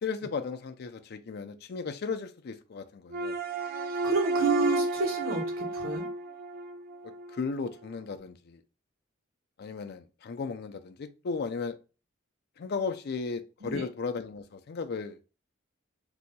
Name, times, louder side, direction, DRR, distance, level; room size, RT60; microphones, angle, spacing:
voice 1, 0.0-3.4 7.3-8.6 9.6-11.8 12.6-15.2, left 4 dB, 50° left, 8 dB, 0.4 m, -35 dB
sound 1, 3.1-7.4, right 2 dB, 45° right, 0.4 m, -31 dB
voice 2, 4.0-6.0 13.6-13.9, right 4 dB, 85° right, -1 dB, 1.2 m, -30 dB
2.7 x 2.2 x 4.0 m, 0.33 s
head